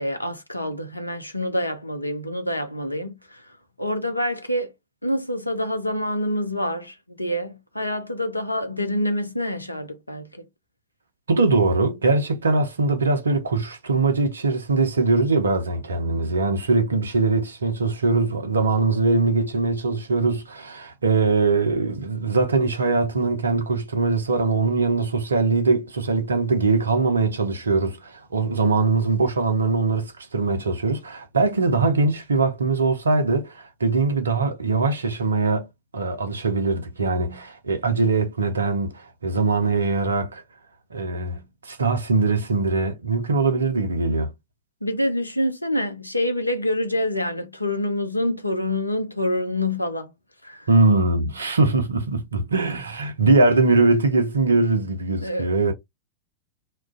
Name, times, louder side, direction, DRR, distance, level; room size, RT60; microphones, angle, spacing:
voice 1, 0.0-3.4 3.8-4.7 5.0-10.4 44.8-50.1 50.4-50.7 55.2-55.7, left 1 dB, 85° left, 0.5 m, -26 dB
voice 2, 11.3-35.7 35.9-40.4 40.9-44.3 50.7-55.7, right 3 dB, 75° right, 0.6 m, -22 dB
2.3 x 2.2 x 3.6 m
figure-of-eight pair, 90°, 0 cm